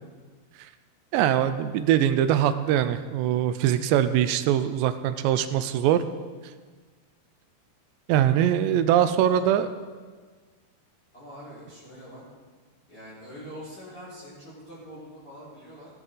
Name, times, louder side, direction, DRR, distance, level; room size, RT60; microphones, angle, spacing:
voice 1, 1.1-6.0 8.1-9.7, right 10 dB, 80° right, 11 dB, 2.7 m, -22 dB
voice 2, 8.9-9.7 11.1-12.2 12.9-15.9, equal, 30° left, -10 dB, 4.8 m, -44 dB
18.0 x 10.5 x 3.8 m, 1.5 s
omnidirectional pair, 5.2 m